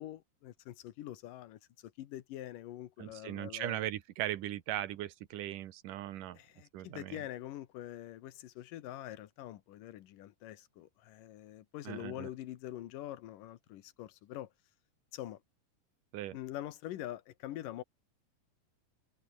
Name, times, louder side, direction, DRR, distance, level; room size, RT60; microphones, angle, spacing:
voice 1, 0.0-3.8 6.3-14.5 15.1-15.4 16.3-17.8, left 13 dB, 90° left, 2.9 m, -45 dB
voice 2, 3.0-6.4 6.7-7.2 11.8-12.3 16.1-16.4, right 13 dB, 80° right, 2.8 m, -39 dB
omnidirectional pair, 3.7 m